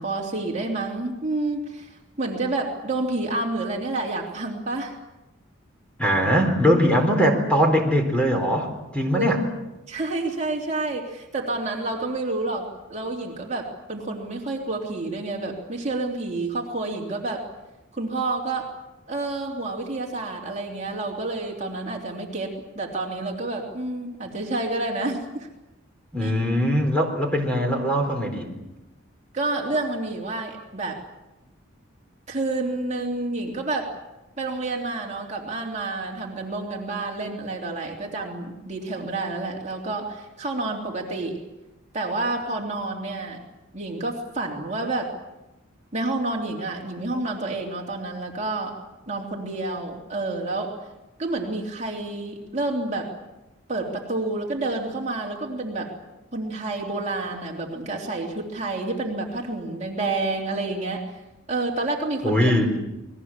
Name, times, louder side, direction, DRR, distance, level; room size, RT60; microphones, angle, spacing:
voice 1, 0.0-5.0 9.1-9.4 9.9-17.4 17.9-18.7 19.1-25.5 26.2-26.3 29.3-31.0 32.3-33.9 34.4-41.4 41.9-43.4 43.7-45.1 45.9-48.8 49.1-50.7 51.2-53.1 53.7-55.9 56.3-61.0 61.5-62.5, right 2 dB, 35° right, -1 dB, 3.2 m, -29 dB
voice 2, 6.0-9.4 26.1-28.5 62.2-62.7, equal, 5° left, 2 dB, 4.1 m, -21 dB
28.5 x 21.0 x 7.5 m, 1.0 s
head